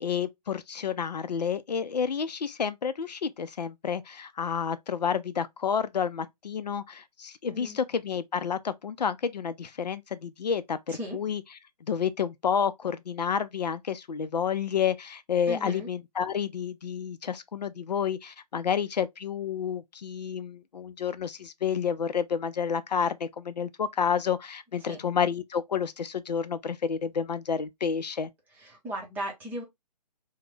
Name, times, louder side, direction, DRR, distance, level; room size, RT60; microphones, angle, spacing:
voice 1, 0.0-11.4 11.8-28.3, left 7 dB, 80° left, 0.4 m, -30 dB
voice 2, 15.5-15.9 24.9-25.0 28.6-29.6, equal, 10° right, 0.7 m, -36 dB
3.0 x 2.1 x 3.2 m
figure-of-eight pair, 140°, 21 cm